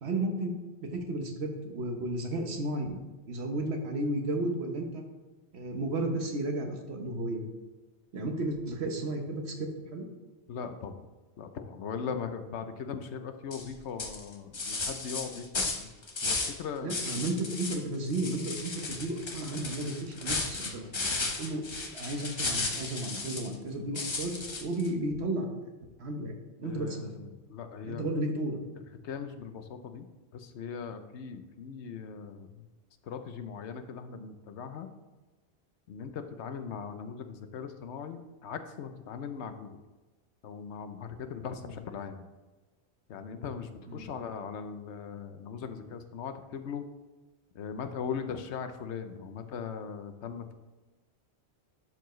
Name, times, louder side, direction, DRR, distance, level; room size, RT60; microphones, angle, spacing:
voice 1, 0.0-0.5 0.8-3.0 3.3-5.0 5.5-7.4 8.1-10.0 16.8-24.3 24.6-25.5 26.0-26.3 26.6-27.1 27.8-28.6 41.6-41.8 43.9-44.0, right 1 dB, 70° right, 3 dB, 1.3 m, -33 dB
voice 2, 10.5-11.1 11.4-15.5 15.8-15.9 16.2-17.1 26.6-28.1 29.0-30.1 30.3-32.7 33.0-34.9 35.9-39.8 40.4-42.3 43.1-46.9 47.5-50.5, left 6 dB, 85° left, 8 dB, 1.0 m, -39 dB
sound 1, 13.5-13.7 14.0-16.6 16.9-17.8 18.1-23.5 24.0-24.9, left 3 dB, 30° left, 0.7 m, -34 dB
11.5 x 4.6 x 3.1 m, 1.2 s
omnidirectional pair, 1.1 m